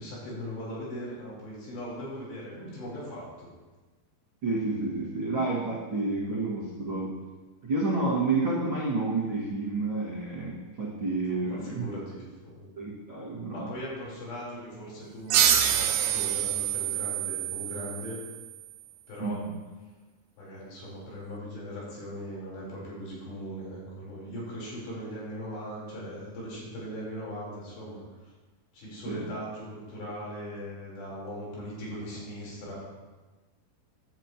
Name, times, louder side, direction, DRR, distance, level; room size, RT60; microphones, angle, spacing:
voice 1, 0.0-3.5 11.3-12.7 13.5-18.2 19.1-19.4 20.4-28.3 28.7-32.8, equal, 80° left, -6 dB, 6.2 m, -39 dB
voice 2, 4.4-7.1 7.6-11.9 12.8-13.7 19.2-19.6 29.1-29.2, right 3 dB, 45° right, -8 dB, 1.7 m, -30 dB
sound 1, 15.3-18.5, right 10 dB, 90° right, 3.0 m, -26 dB
16.5 x 10.5 x 3.0 m, 1.2 s
omnidirectional pair, 4.8 m